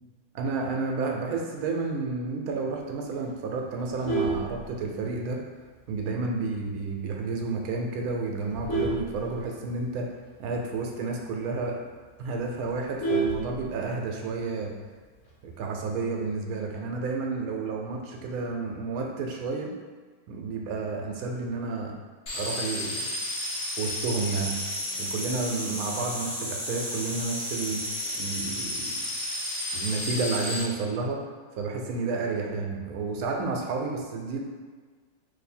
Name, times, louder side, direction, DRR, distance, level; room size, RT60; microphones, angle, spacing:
voice 1, 0.3-5.4 5.9-10.1 10.4-11.8 12.2-14.7 15.4-19.7 20.3-22.0 22.3-23.1 23.8-24.6 25.0-29.0 29.7-31.2 31.6-34.4, right 3 dB, 80° right, 1 dB, 1.0 m, -31 dB
Vehicle horn car horn honking, 3.8-5.3 5.7-6.0 6.3-6.4 6.8-6.9 7.2-7.6 8.1-9.9 10.3-10.4 10.7-10.8 11.2-11.3 11.7-11.8 12.0-14.1 15.2-15.7, right 3 dB, 70° left, 1.1 m, -30 dB
sound 1, 22.3-30.6, left 1 dB, 50° left, 0.6 m, -32 dB
2.7 x 2.6 x 4.2 m, 1.5 s
omnidirectional pair, 1.6 m